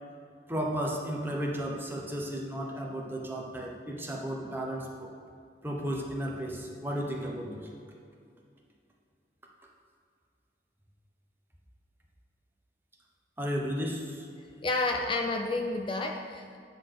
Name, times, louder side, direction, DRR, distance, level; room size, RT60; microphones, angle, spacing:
voice 1, 0.5-5.1 5.6-7.7 13.4-14.3, equal, 10° right, -1 dB, 1.0 m, -34 dB
voice 2, 14.6-16.6, left 2 dB, 30° left, 3 dB, 0.5 m, -30 dB
9.8 x 4.0 x 6.6 m, 2.3 s
head